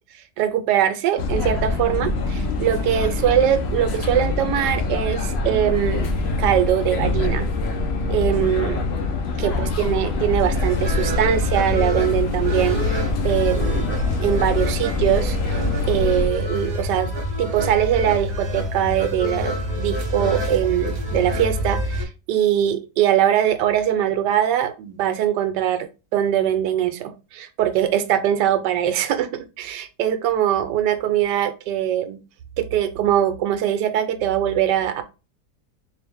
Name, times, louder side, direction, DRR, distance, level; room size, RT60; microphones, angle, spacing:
voice 1, 0.4-6.1 6.4-7.5 8.1-8.8 9.4-13.9 14.2-15.6 15.9-17.1 17.4-32.2 32.6-35.0, right 10 dB, 80° right, 1.2 m, -22 dB
Tren Int. Train Gente Hablando, 1.2-16.3, left 3 dB, 80° left, 0.5 m, -24 dB
sound 1, 10.5-22.0, equal, 35° right, 1.1 m, -27 dB
4.0 x 2.5 x 3.4 m
omnidirectional pair, 1.9 m